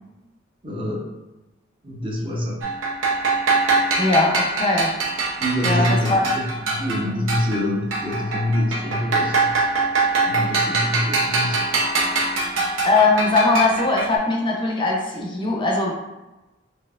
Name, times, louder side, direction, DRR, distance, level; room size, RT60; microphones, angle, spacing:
voice 1, 0.6-1.1 1.8-2.7 5.4-9.5 10.3-11.6, left 1 dB, 25° right, -2 dB, 0.6 m, -25 dB
sound 1, 2.6-7.7 7.9-14.1, right 3 dB, 75° right, 0.7 m, -23 dB
voice 2, 4.0-4.9 5.6-6.2 12.8-15.9, left 3 dB, 25° left, -1 dB, 0.5 m, -20 dB
4.4 x 2.6 x 2.4 m, 1.0 s
head